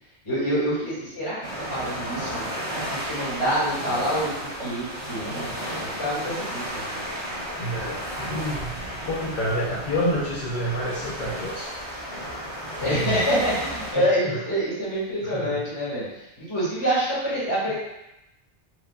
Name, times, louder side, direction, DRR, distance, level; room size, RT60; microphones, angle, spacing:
voice 1, 0.2-1.4 1.7-2.4 2.9-5.6 6.0-6.9 12.8-17.7, equal, 25° left, -10 dB, 1.6 m, -26 dB
sound 1, 1.4-13.9, equal, 80° right, 1.4 m, -33 dB
voice 2, 7.6-11.7 12.8-13.2 13.9-14.4 15.2-15.6, equal, 50° left, -7 dB, 0.7 m, -29 dB
4.7 x 2.4 x 2.2 m, 0.90 s
omnidirectional pair, 1.1 m